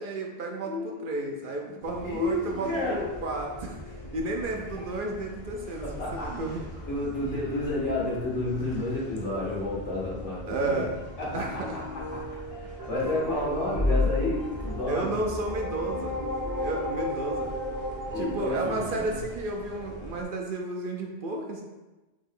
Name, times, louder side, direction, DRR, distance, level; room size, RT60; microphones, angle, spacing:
voice 1, 0.0-5.9 6.1-6.8 8.6-8.8 10.4-11.0 11.3-11.8 14.9-16.2 16.6-17.5 18.2-21.6, right 2 dB, 60° right, 1 dB, 0.6 m, -32 dB
voice 2, 0.6-1.1 2.0-3.1 4.7-4.8 5.8-6.3 6.9-10.8 11.2-11.6 12.1-12.2 12.5-15.2 18.1-19.2, left 2 dB, 85° left, -7 dB, 2.0 m, -30 dB
sound 1, 1.8-20.2, left 1 dB, 40° left, 0.6 m, -41 dB
sound 2, 12.8-18.7, left 1 dB, 20° right, 0.7 m, -31 dB
5.1 x 2.8 x 3.7 m, 1.1 s
omnidirectional pair, 1.2 m